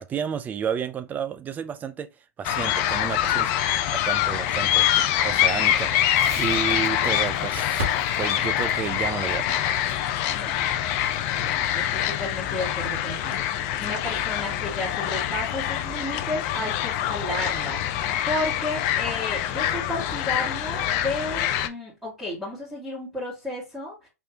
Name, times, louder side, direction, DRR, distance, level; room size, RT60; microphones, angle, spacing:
voice 1, 0.0-2.1 2.4-3.5 3.9-7.8 8.2-9.9, right 7 dB, 20° right, 0.4 m, -31 dB
sound 1, 2.4-21.7, left 11 dB, 40° left, 0.5 m, -25 dB
Crackle, 6.1-13.0, right 1 dB, 60° right, 1.6 m, -38 dB
voice 2, 11.2-24.1, left 1 dB, ahead, 1.8 m, -33 dB
4.3 x 3.1 x 2.8 m
hypercardioid pair, 110°, 9 cm